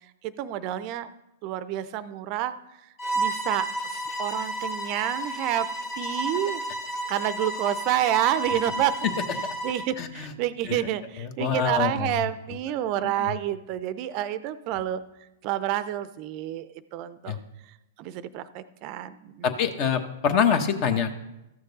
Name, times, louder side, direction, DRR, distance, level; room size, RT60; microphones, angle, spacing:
voice 1, 0.2-1.1 1.4-2.5 3.2-5.7 6.0-6.6 7.1-9.0 9.6-15.0 15.4-17.4 17.7-19.5, right 12 dB, 45° right, 14 dB, 0.5 m, -29 dB
Bowed string instrument, 3.0-9.9, right 1 dB, 15° left, 1.2 m, -31 dB
voice 2, 10.0-10.3 10.7-10.8 11.2-12.1 13.2-13.3 17.3-17.4 19.4-21.1, left 7 dB, 45° left, 8 dB, 1.1 m, -25 dB
14.0 x 6.5 x 4.0 m, 0.93 s
hypercardioid pair, 115°, 0 cm